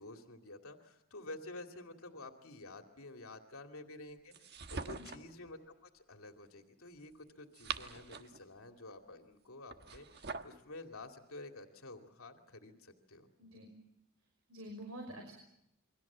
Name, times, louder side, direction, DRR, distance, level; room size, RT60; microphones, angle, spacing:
voice 1, 0.0-13.3, left 2 dB, 80° left, 4 dB, 2.5 m, -50 dB
sound 1, 4.3-5.3 7.3-8.4 9.7-10.6, right 5 dB, 50° right, 1.4 m, -43 dB
voice 2, 4.8-5.1 13.4-13.7 14.5-15.3, equal, 90° right, 3 dB, 5.7 m, -48 dB
29.0 x 23.5 x 7.4 m, 0.81 s
head